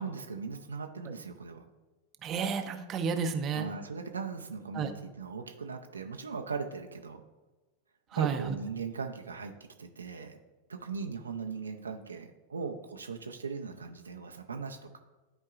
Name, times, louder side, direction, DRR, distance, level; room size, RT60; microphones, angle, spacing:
voice 1, 0.0-1.7 3.5-7.2 8.1-9.5 9.8-10.4 10.7-15.0, right 5 dB, 85° right, 4 dB, 0.6 m, -39 dB
voice 2, 2.2-3.7 4.7-4.9 8.1-8.5, right 6 dB, 35° right, 7 dB, 0.7 m, -31 dB
11.0 x 4.6 x 2.5 m, 1.2 s
hypercardioid pair, 95°, 0 cm